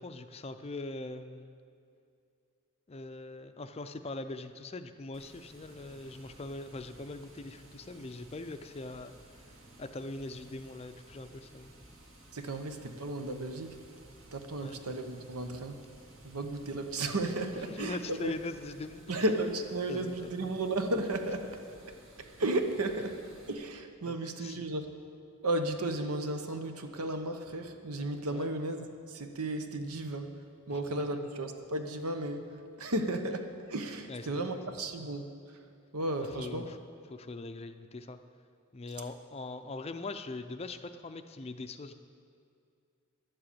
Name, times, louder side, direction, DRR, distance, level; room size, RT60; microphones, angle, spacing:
voice 1, 0.0-1.6 2.9-9.4 9.8-11.7 14.6-14.8 17.6-19.2 19.9-20.1 20.4-20.5 24.0-24.6 28.3-28.5 30.7-31.0 34.1-34.3 36.4-36.8 37.1-38.2 38.7-41.9, left 2 dB, 25° left, 9 dB, 0.4 m, -42 dB
Water, 5.1-23.5, right 1 dB, 65° right, 1.9 m, -56 dB
voice 2, 12.3-13.8 14.3-15.8 16.2-18.3 19.1-21.6 22.2-25.0 25.4-30.4 30.7-35.6 35.9-36.7, right 2 dB, 90° right, 6 dB, 1.0 m, -34 dB
11.5 x 7.8 x 8.4 m, 2.3 s
head